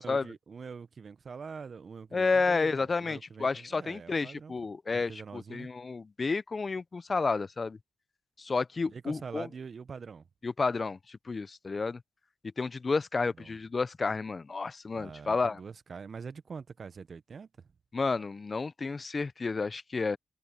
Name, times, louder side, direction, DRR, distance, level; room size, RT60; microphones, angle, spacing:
voice 1, 0.0-4.6 4.9-5.7 8.8-10.3 13.4-13.6 14.9-17.5, right 5 dB, 55° right, 1.1 m, -44 dB
voice 2, 2.1-7.8 8.4-9.5 10.4-12.0 12.6-15.6 17.9-20.2, left 4 dB, 40° left, 0.8 m, -31 dB
supercardioid pair, 45°, 0 cm